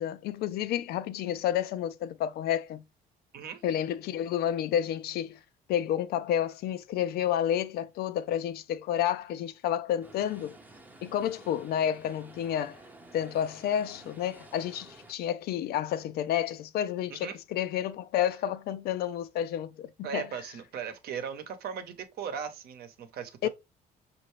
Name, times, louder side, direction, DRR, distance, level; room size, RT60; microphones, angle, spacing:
voice 1, 0.0-2.8 3.6-5.4 5.7-10.6 11.0-12.8 13.1-20.3 23.4-23.5, left 10 dB, 70° left, 0.4 m, -30 dB
sound 1, 10.0-15.1, right 2 dB, 10° right, 0.6 m, -52 dB
voice 2, 20.0-23.5, right 7 dB, 65° right, 0.9 m, -38 dB
5.4 x 2.6 x 3.1 m
cardioid pair, 110°, 17 cm